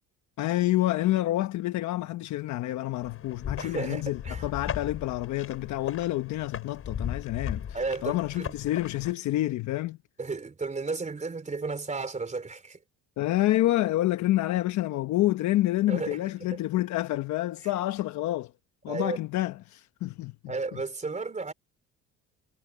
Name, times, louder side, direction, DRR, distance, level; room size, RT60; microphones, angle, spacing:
voice 1, 0.4-10.0 13.2-18.5 18.8-20.8, left 15 dB, 70° left, 1.1 m, -28 dB
sound 1, 3.0-9.1, left 8 dB, 50° left, 7.8 m, -37 dB
voice 2, 3.6-4.5 7.7-8.5 10.2-12.8 15.9-16.2 16.5-16.6 18.9-19.2 20.5-21.5, right 4 dB, 25° right, 3.4 m, -33 dB
cardioid pair, 90°, 30 cm